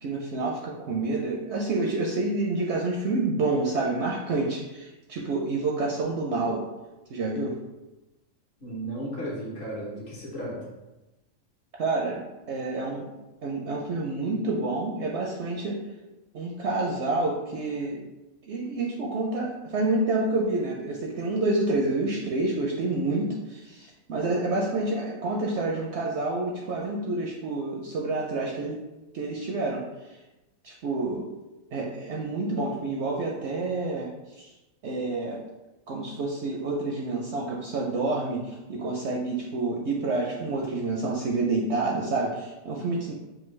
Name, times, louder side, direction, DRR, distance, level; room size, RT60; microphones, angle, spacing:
voice 1, 0.0-6.6 7.1-7.6 11.8-12.2 12.5-13.1 13.4-15.8 16.3-18.1 18.4-28.8 29.1-30.2 30.6-31.3 31.7-34.1 34.4-34.5 34.8-35.4 35.9-43.1, right 2 dB, 65° right, -1 dB, 0.7 m, -28 dB
voice 2, 8.6-10.7, right 1 dB, 50° left, -5 dB, 1.3 m, -34 dB
5.6 x 2.5 x 3.1 m, 1.0 s
omnidirectional pair, 1.5 m